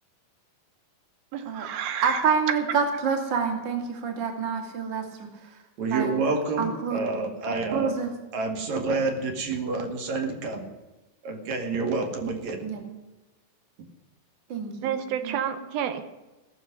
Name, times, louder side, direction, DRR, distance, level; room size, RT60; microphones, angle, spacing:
voice 1, 1.3-2.2 14.8-16.0, right 9 dB, 85° right, 9 dB, 2.9 m, -30 dB
voice 2, 2.0-5.3 5.8-6.1 6.6-7.0 7.7-8.1 12.6-12.8 14.5-15.4, right 6 dB, 35° right, 4 dB, 2.5 m, -27 dB
voice 3, 5.8-8.0 8.3-10.7 11.2-12.7, right 3 dB, 55° right, 5 dB, 3.2 m, -28 dB
17.5 x 7.1 x 9.6 m, 1.1 s
omnidirectional pair, 4.2 m